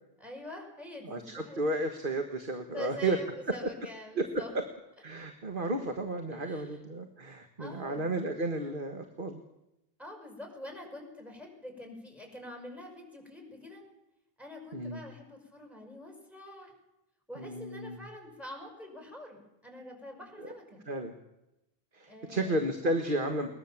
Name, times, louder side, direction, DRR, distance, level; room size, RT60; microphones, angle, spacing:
voice 1, 0.2-1.9 2.7-4.6 6.3-6.8 7.6-8.1 10.0-13.8 14.4-16.7 17.3-20.8 22.1-22.7, left 1 dB, ahead, 2 dB, 6.1 m, -45 dB
voice 2, 1.0-3.2 4.2-4.4 5.0-9.4 14.7-15.0 17.4-18.0 20.9-21.1 21.9-23.5, right 1 dB, 55° right, 5 dB, 1.7 m, -33 dB
21.5 x 20.5 x 7.3 m, 0.91 s
omnidirectional pair, 1.1 m